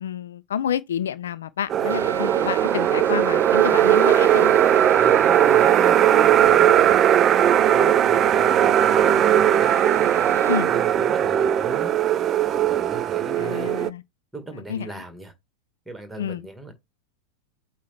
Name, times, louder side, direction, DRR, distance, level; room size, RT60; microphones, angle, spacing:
voice 1, 0.0-4.5 10.5-10.7 13.4-14.0 14.7-14.9 16.2-16.5, left 9 dB, 65° left, 0.4 m, -29 dB
sound 1, 1.7-13.9, right 10 dB, 30° right, 0.4 m, -18 dB
sound 2, 1.9-10.6, right 5 dB, 75° right, 0.8 m, -38 dB
voice 2, 4.9-12.0 12.5-13.7 14.3-15.3 15.9-16.7, right 1 dB, 5° right, 2.0 m, -38 dB
8.3 x 3.0 x 4.5 m
figure-of-eight pair, 90°, 0 cm